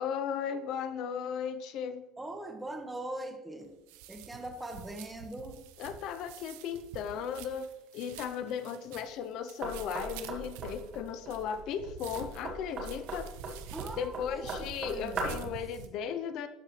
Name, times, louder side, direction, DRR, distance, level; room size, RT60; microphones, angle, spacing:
voice 1, 0.0-2.0 5.8-13.3 14.0-16.5, left 7 dB, 65° left, 11 dB, 0.6 m, -36 dB
voice 2, 2.2-3.7 4.1-5.6 13.7-15.5, right 1 dB, 10° right, 4 dB, 1.4 m, -41 dB
sound 1, 3.6-15.9, right 10 dB, 80° right, 0.6 m, -48 dB
Knock, 9.6-15.5, right 2 dB, 50° right, 2.2 m, -39 dB
12.5 x 4.7 x 3.2 m, 0.97 s
supercardioid pair, 85°, 0 cm